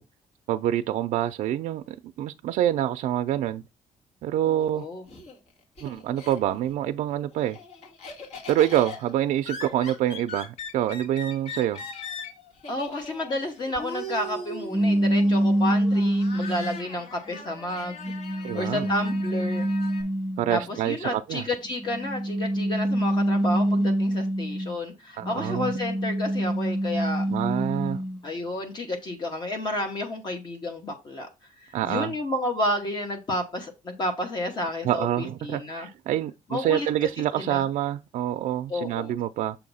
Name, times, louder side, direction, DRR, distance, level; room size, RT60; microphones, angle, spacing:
voice 1, 0.5-3.6 4.2-4.9 5.8-7.6 8.5-11.8 18.4-18.9 20.4-21.4 25.2-25.7 27.3-28.0 31.7-32.1 34.8-39.6, right 12 dB, 70° right, 0.4 m, -26 dB
voice 2, 4.4-5.0 12.7-18.0 18.5-19.7 20.5-27.3 28.2-31.3 31.6-35.9 36.5-37.1 37.4-37.6 38.7-39.1, left 1 dB, 35° left, 1.0 m, -31 dB
Laughter, 4.6-6.7 7.1-20.0, left 2 dB, 55° left, 1.9 m, -40 dB
sound 1, 14.7-16.9 17.5-20.7 21.8-24.8 25.2-28.2, right 1 dB, ahead, 0.3 m, -26 dB
7.0 x 2.8 x 5.4 m
cardioid pair, 170°, 13 cm